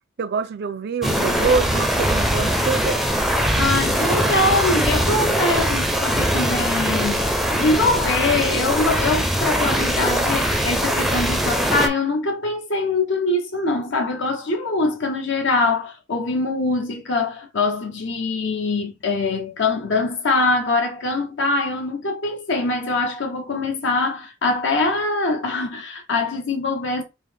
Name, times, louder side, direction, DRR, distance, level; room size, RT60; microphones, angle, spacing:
voice 1, 0.2-3.1, right 5 dB, 55° right, 0.5 m, -25 dB
sound 1, 1.0-11.9, equal, ahead, 0.5 m, -21 dB
voice 2, 3.6-27.0, left 3 dB, 65° left, 0.9 m, -23 dB
5.2 x 2.1 x 3.4 m
head